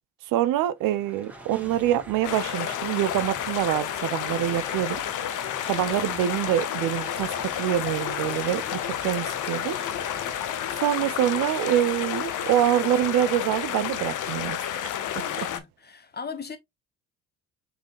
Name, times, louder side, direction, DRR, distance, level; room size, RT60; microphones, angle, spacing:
voice 1, 0.3-5.0 5.7-9.8 10.8-14.6, right 12 dB, 70° right, 0.6 m, -25 dB
sound 1, 0.8-11.6, right 1 dB, 5° right, 1.6 m, -45 dB
sound 2, 2.2-15.6, left 10 dB, 60° left, 0.8 m, -30 dB
voice 2, 15.1-16.6, left 5 dB, 30° left, 1.0 m, -38 dB
4.9 x 3.8 x 2.4 m
hypercardioid pair, 55°, 35 cm